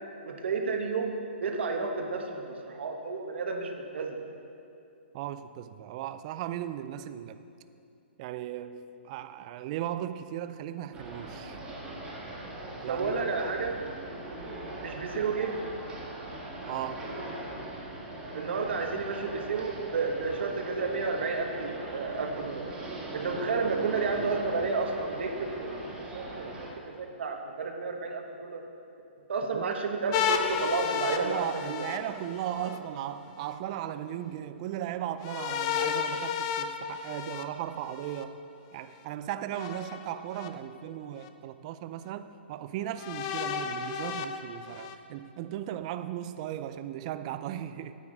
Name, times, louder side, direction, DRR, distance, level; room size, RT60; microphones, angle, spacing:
voice 1, 0.2-1.1 1.4-4.2 12.9-13.7 14.8-15.5 18.3-22.7 23.1-26.5 26.9-28.6 29.3-31.9, right 4 dB, 70° right, 3 dB, 1.2 m, -31 dB
voice 2, 5.1-7.4 8.2-11.6 12.8-13.3 16.6-17.1 29.5-29.8 31.2-38.4 38.7-48.0, right 11 dB, 35° right, 12 dB, 0.4 m, -37 dB
sound 1, 10.9-26.7, right 1 dB, 15° right, 1.7 m, -40 dB
sound 2, 30.1-32.8 35.2-38.2 39.5-40.5 41.2-41.3 43.0-45.0, left 7 dB, 35° left, 0.5 m, -33 dB
9.8 x 9.1 x 3.9 m, 2.6 s
hypercardioid pair, 150°, 6 cm